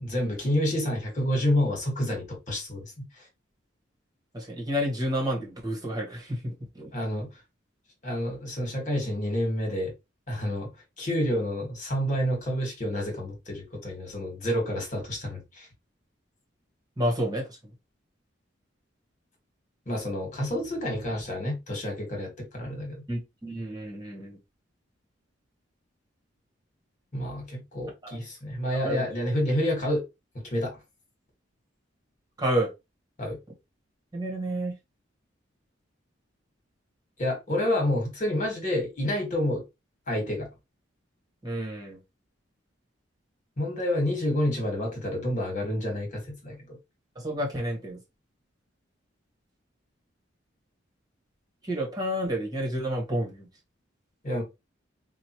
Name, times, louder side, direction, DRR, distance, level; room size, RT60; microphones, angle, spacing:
voice 1, 0.0-3.1 6.9-7.3 8.0-9.9 10.3-10.7 11.0-15.7 19.9-23.0 27.1-30.1 30.5-30.8 33.2-33.4 37.2-39.6 40.1-40.5 43.6-46.8 54.2-54.4, left 1 dB, 40° left, 1.8 m, -29 dB
voice 2, 4.3-6.9 17.0-17.6 23.1-24.4 28.0-28.2 28.8-29.0 32.4-32.7 34.1-34.7 41.4-42.0 47.1-48.0 51.6-53.5, equal, 20° right, 1.5 m, -30 dB
5.1 x 2.5 x 3.1 m
head